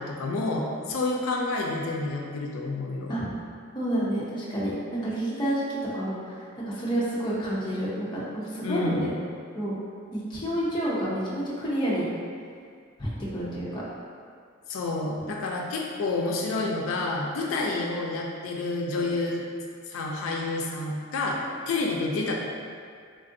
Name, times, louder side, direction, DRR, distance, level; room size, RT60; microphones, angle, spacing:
voice 1, 0.0-3.2 8.6-9.0 14.7-19.4 19.9-21.4 21.7-22.4, left 3 dB, 80° left, -1 dB, 0.3 m, -29 dB
voice 2, 3.7-9.1 9.5-9.8 10.1-12.1 13.0-13.8, right 1 dB, 20° left, -8 dB, 0.6 m, -29 dB
3.5 x 2.5 x 2.6 m, 2.1 s
head